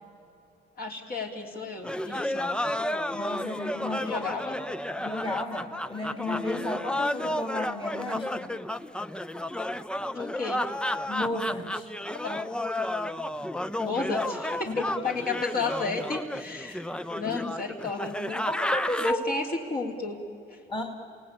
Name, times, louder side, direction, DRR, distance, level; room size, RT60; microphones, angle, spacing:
voice 1, 0.8-2.5 4.0-4.6 10.1-10.6 12.2-12.4 13.8-16.8 17.1-18.5 19.0-20.2 20.5-20.6, left 3 dB, 50° left, 1 dB, 3.5 m, -32 dB
sound 1, 1.8-19.1, left 1 dB, 5° left, 0.6 m, -32 dB
voice 2, 3.1-4.2 5.0-8.5 11.1-11.9 14.7-14.8 18.5-19.2 20.7-20.8, left 2 dB, 25° left, 4 dB, 2.6 m, -33 dB
28.5 x 18.0 x 8.7 m, 2.6 s
cardioid pair, 90°, 20 cm